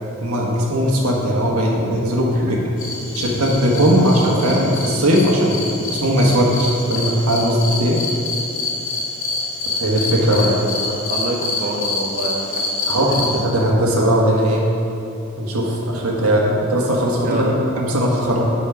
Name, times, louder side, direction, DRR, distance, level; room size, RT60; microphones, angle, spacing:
voice 1, 0.2-2.6 3.1-5.6 5.9-8.0 9.8-10.5 12.9-14.6 15.4-18.5, equal, 85° right, -2 dB, 1.4 m, -18 dB
sound 1, 2.8-13.4, left 3 dB, 70° left, 1.4 m, -27 dB
voice 2, 10.2-13.2 17.2-17.6, right 2 dB, 40° right, -1 dB, 0.6 m, -28 dB
10.0 x 4.2 x 5.0 m, 2.8 s
head